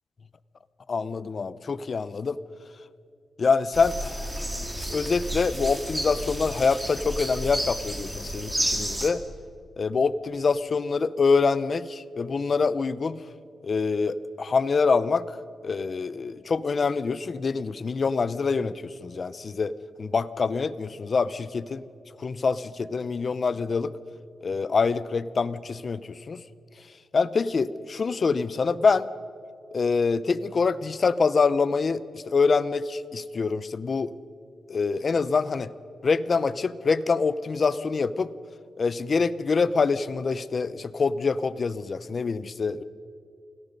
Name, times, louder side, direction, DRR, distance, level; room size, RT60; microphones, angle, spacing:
voice 1, 0.9-2.4 3.4-4.3 4.9-9.2 9.8-13.2 13.6-15.3 15.6-18.7 19.0-19.7 20.0-21.8 22.2-23.9 24.4-26.4 27.1-29.1 29.7-34.1 34.7-35.7 36.0-38.3 38.8-42.8, left 4 dB, 45° left, 15 dB, 0.7 m, -25 dB
sound 1, 3.7-9.1, right 1 dB, 10° right, 2.7 m, -31 dB
28.5 x 17.5 x 5.4 m, 2.5 s
cardioid pair, 100°, 0 cm